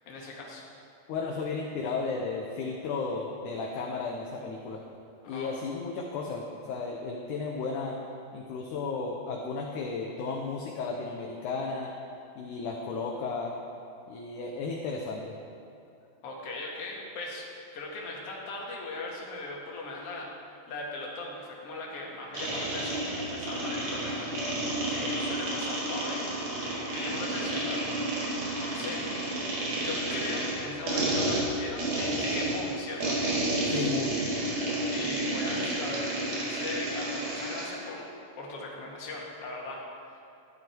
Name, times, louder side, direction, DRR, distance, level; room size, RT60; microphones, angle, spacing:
voice 1, 0.1-0.6 5.2-5.5 16.2-17.5 17.7-26.3 26.9-28.0 28.7-29.0 29.8-33.4 34.9-38.1 38.4-40.2, left 2 dB, 45° left, -2 dB, 2.3 m, -39 dB
voice 2, 1.1-4.8 5.3-8.0 8.3-11.9 12.4-13.6 14.1-15.3 33.7-34.2, left 4 dB, 70° left, 0 dB, 2.0 m, -34 dB
sound 1, 22.3-37.7, right 1 dB, 55° right, 3.5 m, -31 dB
13.5 x 11.0 x 4.5 m, 2.6 s
omnidirectional pair, 4.4 m